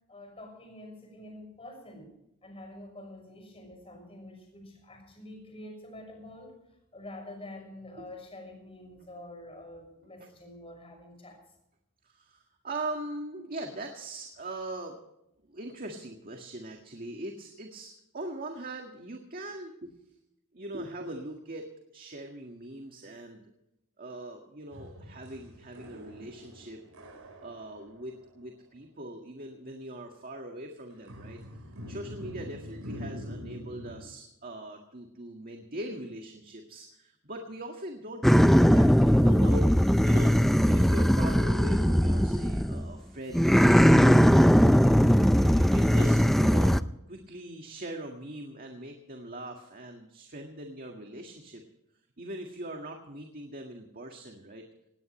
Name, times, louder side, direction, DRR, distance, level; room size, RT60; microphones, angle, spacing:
voice 1, 0.1-2.1 2.4-6.6 6.9-11.4 13.0-13.1, left 1 dB, 25° left, 3 dB, 6.2 m, -47 dB
voice 2, 12.0-15.0 15.4-20.2 20.5-23.5 24.0-26.8 27.4-31.4 31.9-39.7 40.0-43.6 45.4-46.8 47.1-51.6 52.2-54.6, right 1 dB, 40° right, 3 dB, 1.9 m, -41 dB
sound 1, 24.7-28.3 31.1-34.0, equal, 75° right, 4.6 m, -44 dB
sound 2, 38.2-42.9 43.3-46.8, equal, ahead, 0.5 m, -20 dB
18.5 x 18.0 x 3.2 m, 0.82 s
head